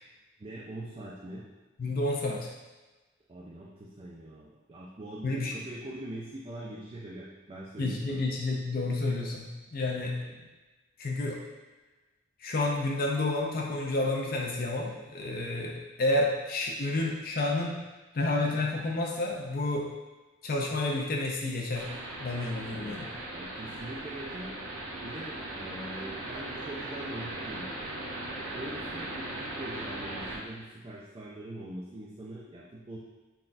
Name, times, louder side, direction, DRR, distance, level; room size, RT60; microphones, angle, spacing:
voice 1, 0.4-1.4 3.3-8.3 22.7-23.0 23.3-24.5 25.0-27.7 28.2-33.0, right 1 dB, 25° right, -5 dB, 0.4 m, -43 dB
voice 2, 1.8-2.5 5.2-5.5 7.8-10.2 11.0-11.4 12.4-17.8 18.1-19.9 20.4-21.9 22.2-23.1, left 2 dB, 45° left, -1 dB, 0.5 m, -30 dB
sound 1, 21.8-30.4, right 1 dB, 70° right, 0.8 m, -38 dB
5.7 x 2.2 x 2.5 m, 1.2 s
head